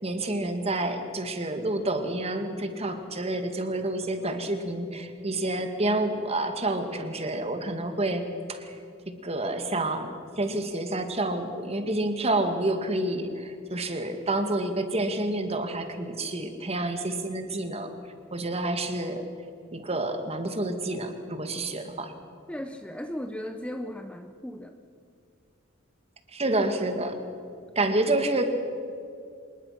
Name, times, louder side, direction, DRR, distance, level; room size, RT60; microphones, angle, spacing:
voice 1, 0.0-8.8 9.1-17.9 18.3-19.2 19.7-22.1 26.3-27.2 27.8-28.5, right 2 dB, 30° right, 7 dB, 2.1 m, -29 dB
voice 2, 22.5-24.8, left 1 dB, 5° left, 7 dB, 0.7 m, -36 dB
25.5 x 20.5 x 5.9 m, 2.4 s
head